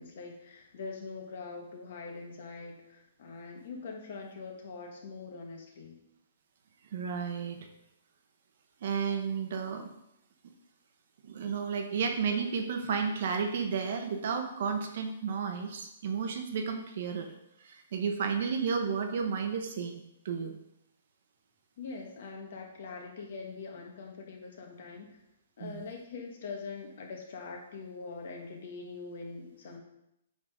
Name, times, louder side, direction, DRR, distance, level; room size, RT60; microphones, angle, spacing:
voice 1, 0.0-6.0 21.8-25.2 25.6-29.8, left 4 dB, 50° left, 1 dB, 1.5 m, -43 dB
voice 2, 6.9-7.7 8.8-9.9 11.2-17.3 17.6-20.6 25.6-25.9, right 6 dB, 45° right, 5 dB, 0.9 m, -32 dB
8.4 x 3.9 x 4.9 m, 0.82 s
hypercardioid pair, 175°, 0 cm